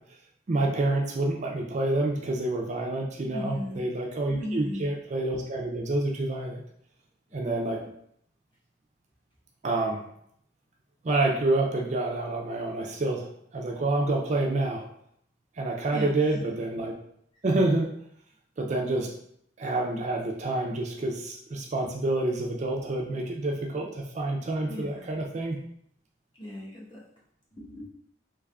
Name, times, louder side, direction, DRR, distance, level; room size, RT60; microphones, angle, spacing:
voice 1, 0.5-6.6 7.3-7.8 9.6-10.0 11.0-13.3 13.5-14.9 15.6-16.9 17.4-17.9 18.6-19.1 19.6-25.6, right 2 dB, 40° right, 0 dB, 0.4 m, -28 dB
voice 2, 3.3-3.8 4.4-4.9 15.9-16.5 21.8-21.9 24.7-25.1 26.4-27.0 27.6-27.9, left 1 dB, 25° left, -6 dB, 1.1 m, -37 dB
3.5 x 3.2 x 2.3 m, 0.70 s
head